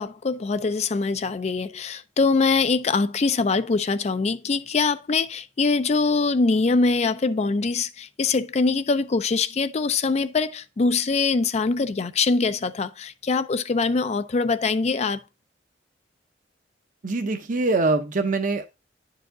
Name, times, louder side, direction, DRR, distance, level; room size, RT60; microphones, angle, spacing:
voice 1, 0.0-15.2, left 4 dB, 40° left, 0.4 m, -23 dB
voice 2, 17.0-18.6, right 3 dB, 45° right, 0.7 m, -23 dB
10.0 x 4.7 x 3.7 m
head